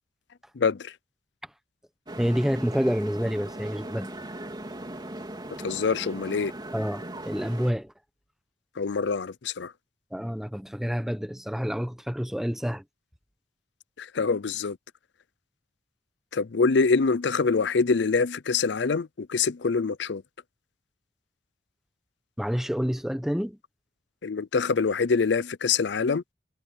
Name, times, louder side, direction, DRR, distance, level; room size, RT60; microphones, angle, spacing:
voice 1, 0.5-0.9 5.6-6.5 8.8-9.7 14.0-14.8 16.3-20.2 24.2-26.2, left 4 dB, 65° left, 0.5 m, -25 dB
sound 1, 2.1-7.7, right 1 dB, 25° right, 3.5 m, -39 dB
voice 2, 2.2-4.1 6.7-7.9 10.1-12.8 22.4-23.6, equal, ahead, 1.1 m, -28 dB
head